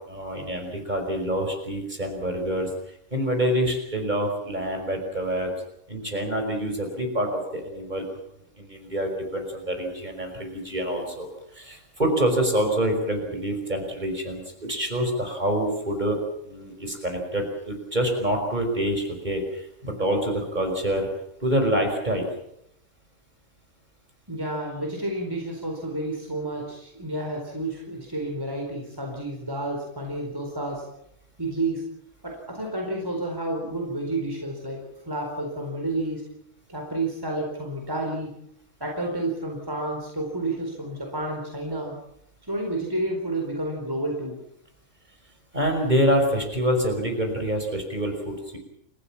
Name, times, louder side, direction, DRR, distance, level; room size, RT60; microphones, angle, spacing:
voice 1, 0.0-2.7 3.1-5.5 5.9-8.1 8.6-11.3 11.5-16.2 16.4-21.1 21.4-22.3 45.5-48.6, equal, 30° right, 3 dB, 5.6 m, -26 dB
voice 2, 24.3-30.8 31.4-31.8 32.2-36.2 36.7-38.3 38.8-41.9 42.4-44.4, right 2 dB, 15° right, 1 dB, 4.5 m, -30 dB
30.0 x 15.0 x 7.4 m, 0.74 s
omnidirectional pair, 1.4 m